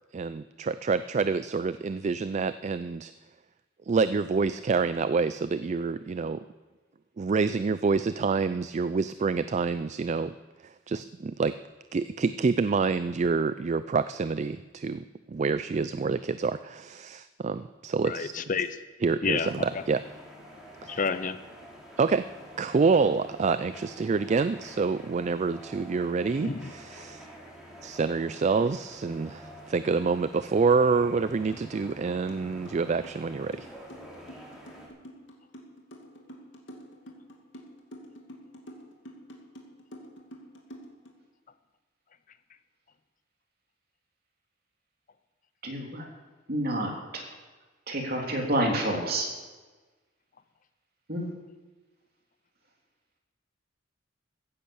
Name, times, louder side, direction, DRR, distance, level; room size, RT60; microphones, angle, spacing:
voice 1, 0.1-3.1 3.9-6.4 7.2-10.3 10.9-11.6 11.9-18.4 19.0-20.0 20.8-21.0 22.0-22.2 22.6-27.3 27.8-33.7, right 4 dB, 35° right, 13 dB, 0.4 m, -27 dB
voice 2, 18.0-18.8 19.2-19.8 20.9-21.4 26.4-26.7, left 5 dB, 45° left, 12 dB, 0.6 m, -30 dB
sound 1, 19.4-34.9, equal, 5° right, 3.2 m, -47 dB
sound 2, 31.5-31.6 31.9-41.1, equal, 70° left, 2.4 m, -47 dB
voice 3, 45.6-46.1 46.5-47.2 47.9-49.3 51.1-51.3, right 1 dB, 55° right, 0 dB, 3.2 m, -29 dB
15.5 x 10.0 x 7.0 m, 1.3 s
head